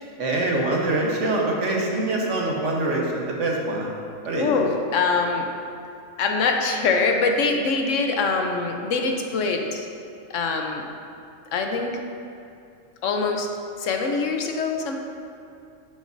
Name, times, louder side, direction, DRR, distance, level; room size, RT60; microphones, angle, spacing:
voice 1, 0.2-3.9 4.2-4.5, right 2 dB, 70° right, -1 dB, 1.4 m, -24 dB
voice 2, 4.3-5.5 6.2-9.9 10.3-10.8 11.5-12.0 13.0-13.5 13.8-14.9, left 4 dB, 75° left, 3 dB, 1.1 m, -23 dB
9.6 x 7.8 x 2.6 m, 2.6 s
omnidirectional pair, 1.3 m